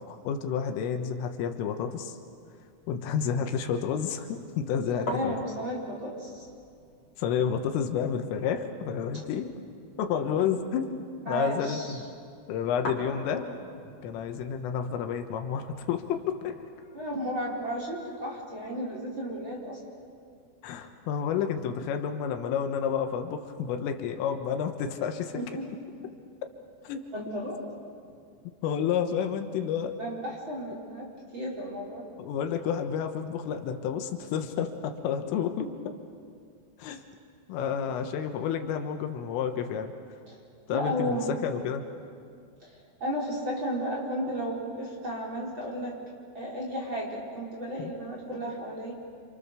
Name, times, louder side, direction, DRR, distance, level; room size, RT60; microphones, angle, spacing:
voice 1, 0.1-2.2 2.9-5.4 7.2-9.5 10.0-11.0 11.3-12.0 12.5-13.5 14.0-16.6 20.6-25.4 26.8-27.1 28.6-30.0 32.2-36.0 36.8-37.0 37.5-39.9 40.7-41.8 47.8-47.9, left 7 dB, 80° left, 6 dB, 3.8 m, -30 dB
sound 1, 2.4-18.2, left 1 dB, 35° left, 4.3 m, -45 dB
voice 2, 4.9-6.5 11.3-12.0 16.9-19.8 25.3-25.6 27.1-27.6 30.0-32.1 40.3-40.4 40.7-41.3 42.7-46.0 46.3-48.9, equal, 25° right, -3 dB, 4.7 m, -33 dB
29.5 x 27.0 x 6.9 m, 2.3 s
omnidirectional pair, 5.8 m